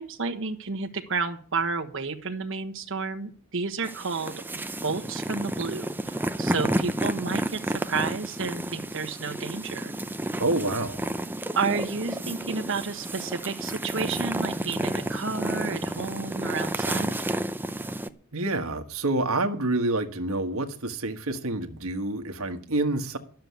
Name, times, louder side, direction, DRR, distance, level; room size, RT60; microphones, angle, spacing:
voice 1, 0.0-4.3 4.8-9.9 11.5-17.1, right 4 dB, 65° right, 1.3 m, -31 dB
sound 1, 3.8-18.1, right 1 dB, 10° right, 0.7 m, -31 dB
voice 2, 10.4-11.1 18.3-23.2, right 2 dB, 85° right, 1.4 m, -28 dB
12.0 x 7.0 x 9.5 m
head